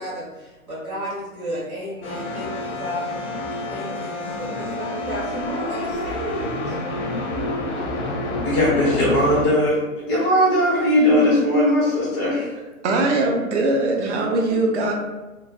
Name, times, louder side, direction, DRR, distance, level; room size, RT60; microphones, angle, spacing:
voice 1, 0.0-3.0 3.7-6.8, right 1 dB, 75° right, -9 dB, 1.4 m, -32 dB
sound 1, 2.0-9.4, left 2 dB, 55° left, 0.7 m, -28 dB
voice 2, 8.4-9.8 10.1-12.5, left 1 dB, 20° left, -8 dB, 0.8 m, -18 dB
voice 3, 12.8-14.9, right 2 dB, 55° right, 1 dB, 0.6 m, -21 dB
2.9 x 2.1 x 2.7 m, 1.1 s
figure-of-eight pair, 125°, 42 cm